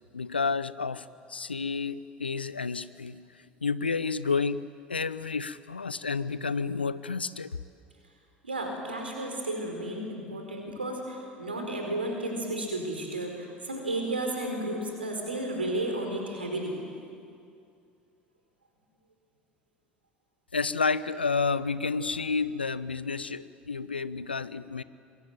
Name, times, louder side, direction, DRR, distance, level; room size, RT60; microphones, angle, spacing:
voice 1, 0.1-3.2 3.6-4.6 4.9-7.6 20.5-24.8, left 4 dB, 90° left, 16 dB, 0.6 m, -30 dB
voice 2, 8.4-16.8, right 1 dB, 85° right, 2 dB, 4.6 m, -33 dB
26.5 x 22.5 x 9.1 m, 2.5 s
figure-of-eight pair, 65°, 5 cm